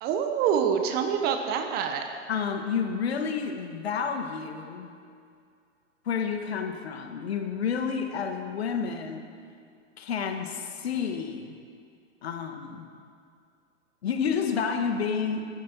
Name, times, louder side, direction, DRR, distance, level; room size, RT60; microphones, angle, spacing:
voice 1, 0.0-2.1, right 7 dB, 25° right, 5 dB, 1.2 m, -26 dB
voice 2, 2.3-4.9 6.1-9.3 10.0-11.6 12.2-12.9 14.0-15.5, left 6 dB, 55° left, 6 dB, 1.7 m, -30 dB
21.0 x 12.5 x 4.5 m, 2.3 s
figure-of-eight pair, 110°, 37 cm